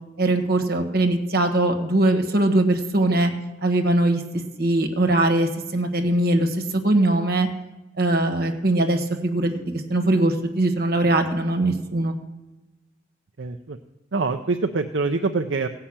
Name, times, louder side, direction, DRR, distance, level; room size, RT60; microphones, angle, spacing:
voice 1, 0.2-3.3 3.6-4.2 4.6-7.5 8.0-12.1, right 2 dB, 50° right, 6 dB, 1.5 m, -21 dB
voice 2, 13.4-13.8 14.1-15.7, right 3 dB, 70° right, 5 dB, 0.6 m, -25 dB
16.0 x 5.7 x 8.8 m, 1.0 s
head